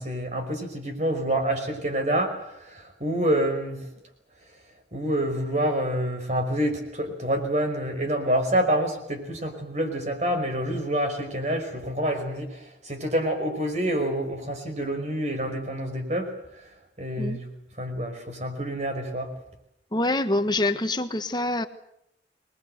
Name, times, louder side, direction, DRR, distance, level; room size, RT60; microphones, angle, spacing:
voice 1, 0.0-3.9 4.9-16.7 17.0-17.5 17.8-19.3, right 1 dB, 40° right, 5 dB, 5.4 m, -27 dB
voice 2, 19.9-21.7, left 2 dB, 25° left, 9 dB, 1.4 m, -25 dB
26.0 x 21.0 x 8.0 m, 0.79 s
head